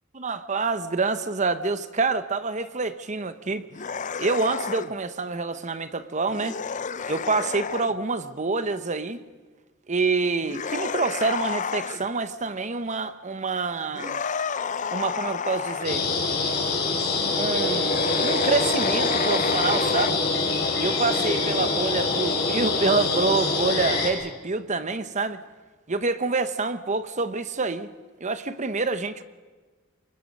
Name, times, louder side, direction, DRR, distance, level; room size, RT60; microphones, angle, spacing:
voice 1, 0.2-3.6 4.2-6.6 7.1-9.2 9.9-14.2 14.9-16.1 17.4-20.2 20.8-25.4 25.9-27.9 28.2-29.2, right 3 dB, 35° right, 1.0 m, -27 dB
sound 1, 3.7-4.9 6.3-7.9 10.4-12.1 13.9-16.0 17.8-20.1, left 6 dB, 40° left, 0.6 m, -30 dB
sound 2, 15.8-24.1, left 3 dB, 55° left, 5.0 m, -25 dB
28.5 x 24.0 x 5.4 m
head